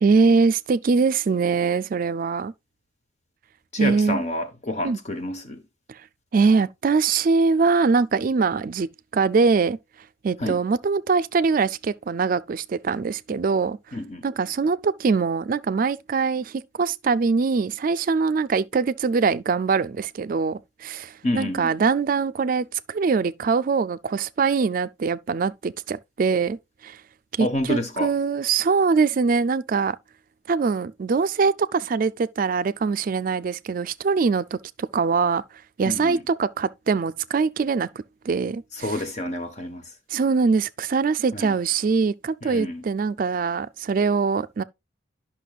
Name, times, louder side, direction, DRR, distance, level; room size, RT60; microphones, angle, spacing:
voice 1, 0.0-2.5 3.8-4.2 4.8-5.0 5.9-6.0 6.3-8.9 9.1-9.8 10.2-13.8 14.2-26.6 26.8-27.0 27.3-30.0 30.5-35.4 35.8-37.9 38.2-39.0 40.1-44.6, right 4 dB, 45° right, 0.3 m, -23 dB
voice 2, 3.7-5.6 10.4-10.6 13.9-14.2 21.2-21.7 27.4-28.1 35.9-36.2 38.8-39.8 41.3-41.5 42.4-42.8, left 1 dB, 35° left, 1.0 m, -28 dB
11.0 x 5.9 x 2.3 m
head